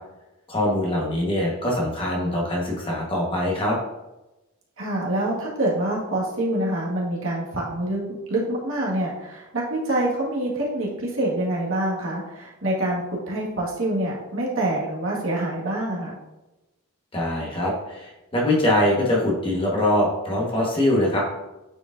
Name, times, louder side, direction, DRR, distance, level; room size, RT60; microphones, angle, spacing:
voice 1, 0.5-3.8 17.1-21.2, left 1 dB, 25° left, -3 dB, 1.3 m, -23 dB
voice 2, 4.8-8.0 8.3-16.2, right 1 dB, 60° right, -4 dB, 1.8 m, -26 dB
8.8 x 4.9 x 2.6 m, 1.0 s
head